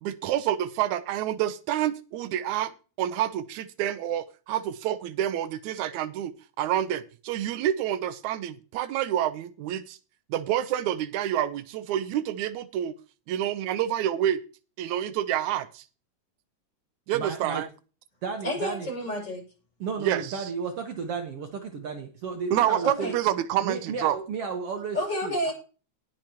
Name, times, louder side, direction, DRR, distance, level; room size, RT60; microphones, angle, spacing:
voice 1, 0.0-2.7 3.0-6.3 6.6-10.0 10.3-12.9 13.3-14.4 14.8-15.8 17.1-17.7 20.0-20.5 22.5-24.2, right 11 dB, 90° right, 13 dB, 2.1 m, -28 dB
voice 2, 17.1-17.6 18.2-18.9 19.8-23.1 23.6-25.0 25.2-25.5, right 5 dB, 60° right, 4 dB, 2.0 m, -33 dB
voice 3, 18.4-19.4 22.8-23.2 24.9-25.5, equal, 35° left, -1 dB, 6.9 m, -30 dB
19.5 x 6.7 x 2.9 m, 0.34 s
omnidirectional pair, 3.3 m